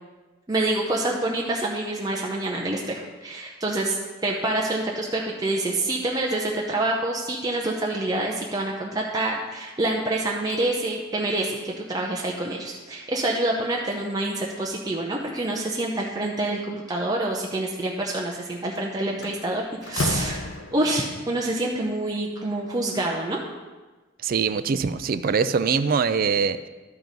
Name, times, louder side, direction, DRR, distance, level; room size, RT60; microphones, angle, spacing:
voice 1, 0.5-20.4 20.7-23.4, right 2 dB, 20° right, -2 dB, 0.7 m, -27 dB
Slam, 18.6-18.8 19.2-21.1, left 2 dB, 75° left, 0.7 m, -30 dB
voice 2, 24.2-26.7, right 5 dB, 50° right, 12 dB, 0.4 m, -23 dB
12.0 x 4.6 x 5.2 m, 1.2 s
head